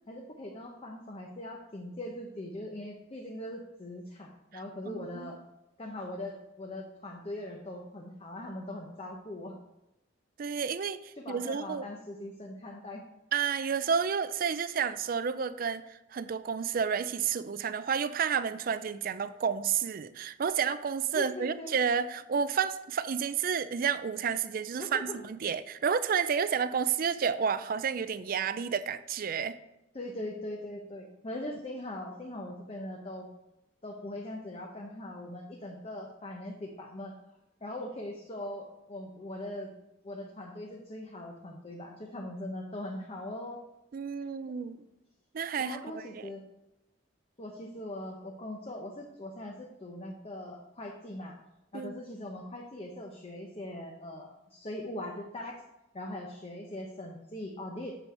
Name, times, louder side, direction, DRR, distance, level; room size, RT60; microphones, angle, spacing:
voice 1, 0.1-5.4 5.8-9.6 11.2-13.0 21.1-21.7 24.8-25.2 29.9-33.3 33.8-37.2 37.6-39.7 40.0-43.6 44.5-44.6 45.6-46.4 47.4-51.4 51.7-55.6 55.9-58.0, left 1 dB, 35° left, 0 dB, 0.9 m, -41 dB
voice 2, 4.5-5.3 10.4-11.8 13.3-29.6 43.9-44.8 45.3-46.3 51.7-51.9, right 6 dB, 50° right, 14 dB, 0.4 m, -31 dB
7.0 x 7.0 x 4.4 m, 0.91 s
head